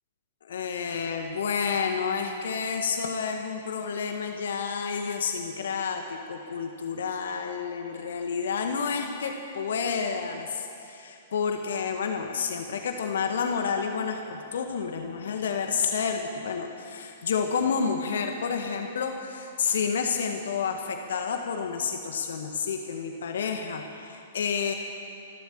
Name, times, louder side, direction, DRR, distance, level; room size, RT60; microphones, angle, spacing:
voice 1, 0.4-24.7, left 6 dB, 60° left, 4 dB, 1.8 m, -30 dB
27.5 x 12.5 x 7.7 m, 2.6 s
figure-of-eight pair, 110°, 0 cm